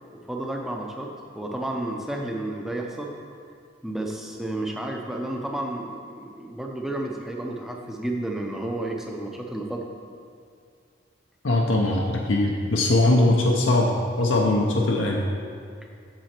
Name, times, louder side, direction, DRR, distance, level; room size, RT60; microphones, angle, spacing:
voice 1, 0.1-3.1 3.8-9.9, right 1 dB, ahead, 0 dB, 0.6 m, -31 dB
voice 2, 11.4-15.2, left 2 dB, 75° left, -1 dB, 0.7 m, -21 dB
7.8 x 7.0 x 4.4 m, 2.3 s
head